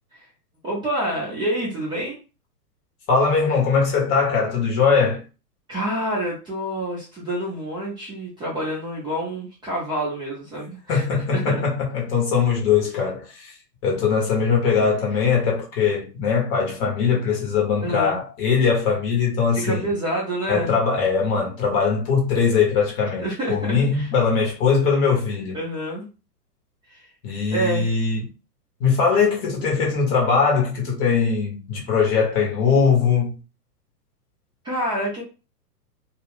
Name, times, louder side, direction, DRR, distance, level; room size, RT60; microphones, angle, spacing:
voice 1, 0.6-2.2 5.7-11.0 11.3-11.6 14.7-14.8 17.8-18.2 19.5-20.7 23.2-24.1 25.5-26.1 26.9-27.0 27.5-27.9 34.6-35.2, right 1 dB, 10° right, 0.7 m, -27 dB
voice 2, 3.1-5.2 10.9-13.6 13.8-19.9 20.5-25.6 27.2-28.3 28.8-33.3, left 5 dB, 30° left, 1.0 m, -21 dB
2.3 x 2.3 x 3.5 m
hypercardioid pair, 125°, 48 cm